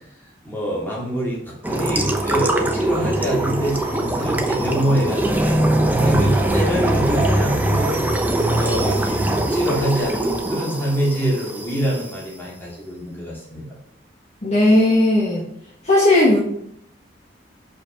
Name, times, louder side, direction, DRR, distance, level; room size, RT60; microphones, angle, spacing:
voice 1, 0.4-5.5 6.0-13.6, equal, 10° left, -5 dB, 2.8 m, -25 dB
sound 1, 1.6-12.1, right 1 dB, 10° right, 0.8 m, -22 dB
voice 2, 14.4-15.4 15.8-16.4, left 1 dB, 40° left, -5 dB, 1.7 m, -15 dB
6.6 x 5.4 x 5.2 m, 0.74 s
head